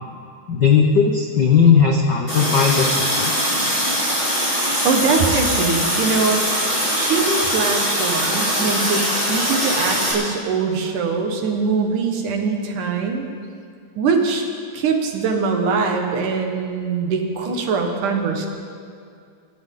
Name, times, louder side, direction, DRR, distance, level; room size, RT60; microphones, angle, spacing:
voice 1, 0.5-3.3, left 6 dB, 80° left, 1 dB, 0.9 m, -17 dB
Water tap faucet, 2.3-10.1, equal, 15° left, 4.6 m, -21 dB
voice 2, 4.8-6.5 6.9-13.3 14.0-14.4 14.7-18.5, right 4 dB, 90° right, 3 dB, 3.0 m, -22 dB
25.5 x 12.0 x 3.8 m, 2.4 s
omnidirectional pair, 3.5 m